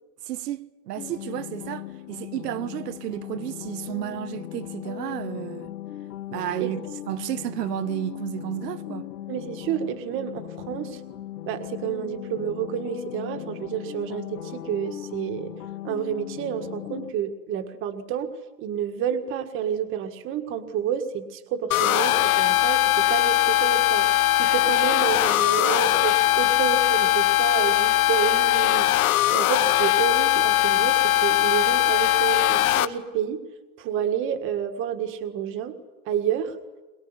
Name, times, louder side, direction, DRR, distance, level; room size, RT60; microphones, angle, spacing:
voice 1, 0.2-5.7 6.3-6.8 7.1-9.1, right 13 dB, 90° right, 1.3 m, -32 dB
sound 1, 1.0-17.1, left 14 dB, 80° left, 1.8 m, -38 dB
voice 2, 9.3-11.0 11.5-15.5 15.8-24.1 24.4-28.9 29.3-33.4 33.8-35.8 36.1-36.6, right 9 dB, 25° right, 1.7 m, -29 dB
sound 2, 21.7-32.9, left 15 dB, 60° left, 1.3 m, -20 dB
23.0 x 21.5 x 9.8 m
supercardioid pair, 170°, 47 cm